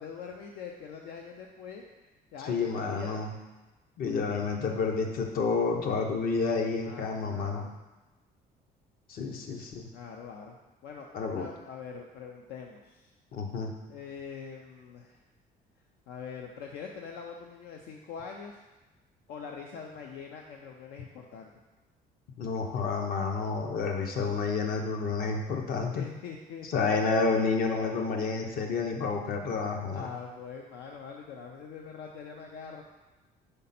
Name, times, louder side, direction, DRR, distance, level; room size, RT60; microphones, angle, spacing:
voice 1, 0.0-1.8 2.3-3.2 6.8-7.7 9.9-10.6 10.8-13.1 13.9-15.2 16.1-18.6 19.3-21.5 25.9-26.9 29.9-32.8, left 6 dB, 80° left, 1 dB, 0.5 m, -43 dB
voice 2, 2.5-3.3 4.0-7.7 9.1-9.9 11.1-11.5 13.3-13.7 22.4-26.0 26.7-30.1, left 4 dB, 60° left, 3 dB, 0.9 m, -29 dB
5.3 x 4.3 x 4.2 m, 1.1 s
cardioid pair, 110°, 17 cm